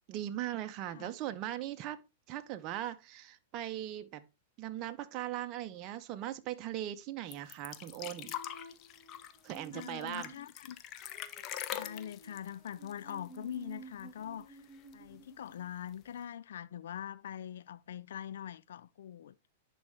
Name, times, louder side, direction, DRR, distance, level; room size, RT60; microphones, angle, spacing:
voice 1, 0.1-2.0 2.3-4.2 4.6-8.3 9.4-10.3, right 13 dB, 40° right, 0.7 m, -39 dB
sound 1, 7.3-13.7 14.0-14.1 14.4-15.1 15.9-16.0, left 11 dB, 40° left, 0.6 m, -43 dB
Female singing, 8.0-15.7, right 2 dB, 5° left, 3.0 m, -54 dB
voice 2, 9.7-10.8 11.7-14.6 14.9-19.3, left 10 dB, 70° left, 0.3 m, -43 dB
10.5 x 4.2 x 3.4 m
hypercardioid pair, 110°, 0 cm